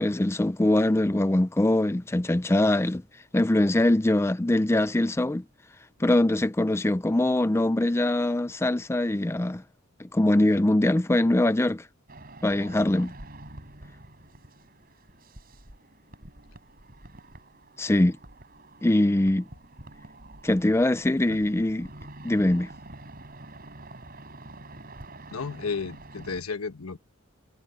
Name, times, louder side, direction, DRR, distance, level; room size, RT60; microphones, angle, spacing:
voice 1, 0.0-3.0 3.3-5.4 6.0-9.6 10.0-11.8 12.4-13.1 17.8-18.2 18.8-19.4 20.4-21.9 22.2-22.7, left 1 dB, 10° left, 0.4 m, -23 dB
sound 1, 12.1-26.4, right 1 dB, 45° right, 5.7 m, -47 dB
voice 2, 25.3-27.0, left 5 dB, 90° left, 1.2 m, -33 dB
head